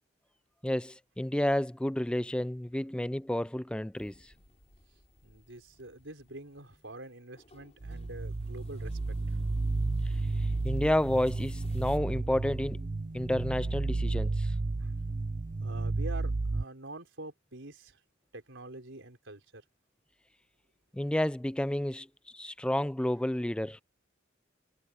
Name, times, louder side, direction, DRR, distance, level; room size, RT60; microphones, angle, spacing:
voice 1, 0.6-4.3 10.6-12.9 13.1-14.5 20.9-22.1 22.3-23.8, left 1 dB, 5° left, 0.4 m, -30 dB
sound 1, 3.9-12.0, left 1 dB, 35° left, 5.7 m, -55 dB
voice 2, 5.2-9.0 9.3-9.4 14.8-14.9 15.6-18.0 18.3-19.6, right 2 dB, 70° right, 4.4 m, -46 dB
sound 2, 7.8-16.6, right 3 dB, 40° right, 0.6 m, -32 dB
head